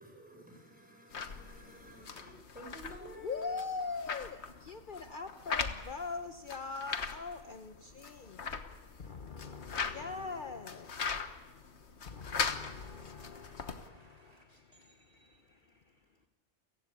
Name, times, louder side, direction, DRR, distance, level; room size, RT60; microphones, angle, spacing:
voice 1, 0.0-3.6, left 1 dB, 5° right, 5.9 m, -51 dB
sound 1, 1.1-13.9, left 5 dB, 70° left, 1.5 m, -40 dB
voice 2, 3.2-8.4 9.0-16.1, left 4 dB, 50° left, 1.0 m, -43 dB
voice 3, 8.1-9.0 11.3-16.3, equal, 30° right, 4.1 m, -66 dB
29.5 x 16.0 x 8.5 m
omnidirectional pair, 1.2 m